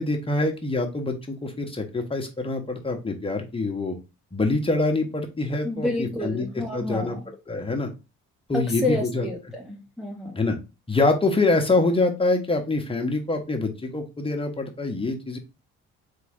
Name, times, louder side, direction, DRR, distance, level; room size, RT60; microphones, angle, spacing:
voice 1, 0.0-3.9 4.3-6.5 6.7-7.2 7.5-7.9 8.5-9.3 10.4-10.6 10.9-15.4, left 2 dB, 20° left, 4 dB, 1.3 m, -25 dB
voice 2, 5.6-7.2 8.5-10.4, left 2 dB, ahead, -1 dB, 0.8 m, -29 dB
3.7 x 3.7 x 3.6 m, 0.28 s
supercardioid pair, 80°, 30 cm